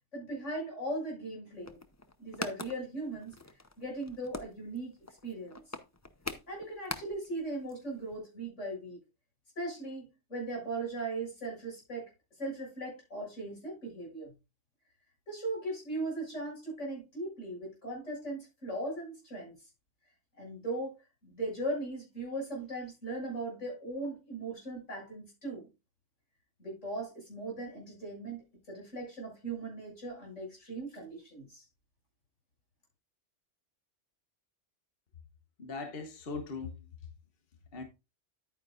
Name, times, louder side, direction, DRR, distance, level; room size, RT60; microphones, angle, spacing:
voice 1, 0.1-1.8 2.2-3.3 3.8-5.6 6.5-9.0 9.6-12.1 12.4-14.3 15.3-19.7 20.4-20.9 21.2-25.7 26.6-31.6, right 2 dB, 80° left, 6.9 m, -38 dB
sound 1, 1.5-7.4 7.7-7.8 8.0-8.2, left 2 dB, 15° left, 0.6 m, -43 dB
voice 2, 35.6-36.9 37.7-37.8, left 4 dB, 50° left, 1.4 m, -39 dB
10.5 x 9.3 x 2.5 m
omnidirectional pair, 1.2 m